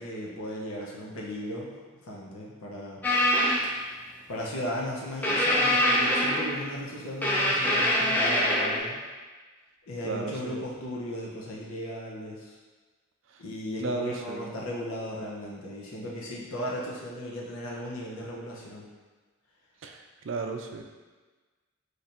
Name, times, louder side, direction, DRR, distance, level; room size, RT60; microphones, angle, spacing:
voice 1, 0.0-1.7 2.0-3.0 4.3-9.0 9.9-12.6 13.4-18.9, left 1 dB, 85° left, -3 dB, 0.7 m, -36 dB
sound 1, 3.0-3.7 5.2-6.7 7.2-8.8, left 1 dB, 10° left, 0.5 m, -24 dB
voice 2, 10.0-10.6 13.8-14.6 19.8-20.8, right 3 dB, 65° right, 3 dB, 0.4 m, -34 dB
3.3 x 2.5 x 4.2 m, 1.3 s
head